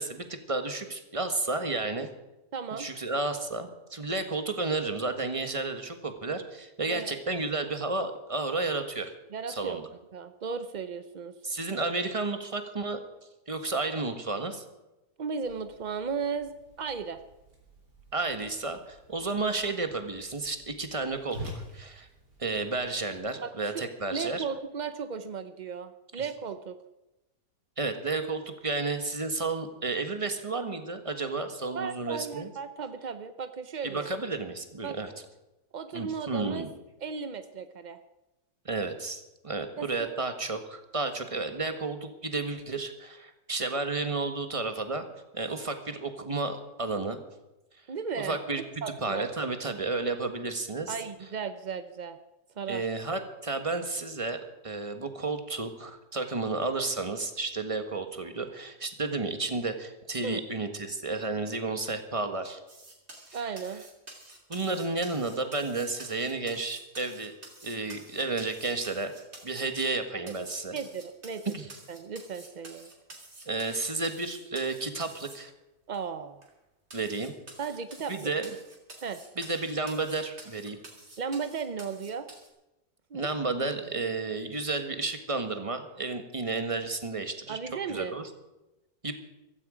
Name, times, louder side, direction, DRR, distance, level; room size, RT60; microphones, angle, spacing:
voice 1, 0.0-2.1 2.7-9.1 9.5-9.9 11.4-13.0 13.5-14.6 18.1-22.1 22.4-24.5 26.2-26.3 27.8-32.5 33.8-35.1 35.9-36.7 38.6-45.1 45.3-47.2 48.1-48.6 49.0-51.0 52.7-54.4 54.6-62.6 64.5-67.3 67.6-69.1 69.4-70.7 71.5-71.7 73.5-75.5 76.9-77.3 78.1-78.5 79.4-80.8 83.1-87.6 87.9-88.2 89.0-89.1, right 3 dB, 20° right, 7 dB, 1.3 m, -32 dB
voice 2, 2.5-2.9 6.9-7.1 9.3-9.8 10.1-11.3 15.2-17.2 23.4-23.8 24.1-26.8 31.7-34.1 34.8-35.1 35.7-36.7 37.0-38.0 39.8-40.2 47.9-49.3 50.9-52.2 52.6-52.9 60.2-60.4 63.3-63.8 70.7-71.4 71.9-72.9 75.9-76.5 77.6-78.3 79.0-79.2 81.2-82.3 83.1-83.3 87.5-88.2, right 6 dB, 70° right, 10 dB, 0.4 m, -36 dB
Whoosh swoosh swish, 15.4-23.2, equal, 85° right, 4.0 m, -48 dB
sound 1, 62.7-70.0 70.3-75.4 75.9-76.0 76.4-76.5 76.9-82.5, right 2 dB, 40° right, 3.3 m, -49 dB
15.5 x 14.5 x 5.0 m, 0.99 s
omnidirectional pair, 1.8 m